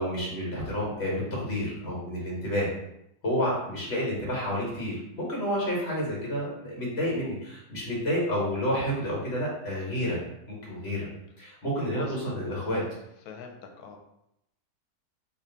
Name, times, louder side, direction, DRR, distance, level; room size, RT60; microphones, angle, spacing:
voice 1, 0.0-2.7 3.2-10.2 10.5-11.1 11.4-12.8, equal, 45° left, -5 dB, 1.6 m, -30 dB
voice 2, 11.9-12.6 13.3-14.0, left 5 dB, 85° left, 3 dB, 1.1 m, -42 dB
3.3 x 2.6 x 3.9 m, 0.82 s
omnidirectional pair, 1.6 m